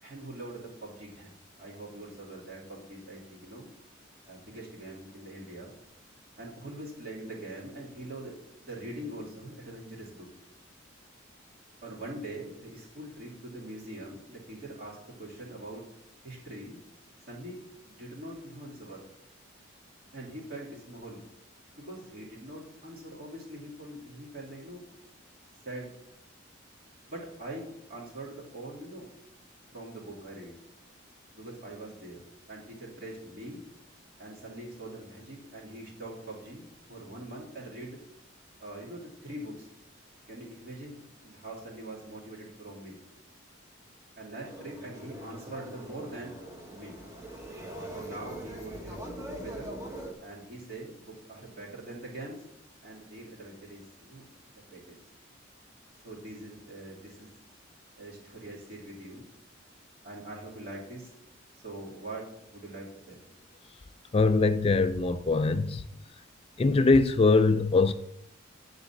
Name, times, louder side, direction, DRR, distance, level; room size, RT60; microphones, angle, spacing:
voice 1, 0.0-3.7 4.3-5.7 6.4-8.3 8.6-10.3 11.8-15.8 16.2-16.8 17.3-19.0 20.1-21.2 21.7-24.8 25.6-25.9 27.1-29.1 29.7-30.6 31.3-32.2 32.5-33.6 34.2-38.0 38.6-39.7 40.3-43.0 44.2-46.4 46.7-47.0 47.9-49.0 49.3-49.7 50.2-52.5 52.8-55.0 56.0-57.3 58.0-59.2 60.0-61.1 61.5-63.2, right 1 dB, 50° right, 2.9 m, -43 dB
sound 1, 44.4-50.1, right 1 dB, 15° right, 1.2 m, -42 dB
voice 2, 64.1-65.9 66.6-67.9, left 3 dB, 30° left, 0.3 m, -22 dB
9.7 x 4.1 x 7.1 m
head